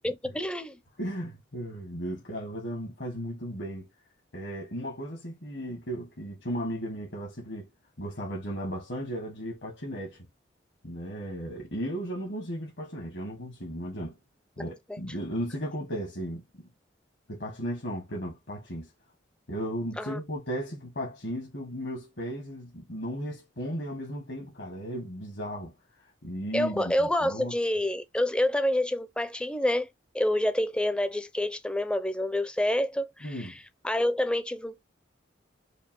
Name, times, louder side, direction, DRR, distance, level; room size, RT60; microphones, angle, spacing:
voice 1, 0.0-0.8 20.0-20.2 26.5-29.9 30.1-33.3 33.8-34.8, left 1 dB, 5° left, 0.4 m, -27 dB
voice 2, 1.0-3.9 4.3-7.7 8.0-10.2 10.8-14.2 14.6-16.4 17.3-18.9 19.5-25.7 26.2-27.6 33.2-33.6, equal, 70° left, 1.5 m, -35 dB
5.1 x 2.5 x 2.9 m
head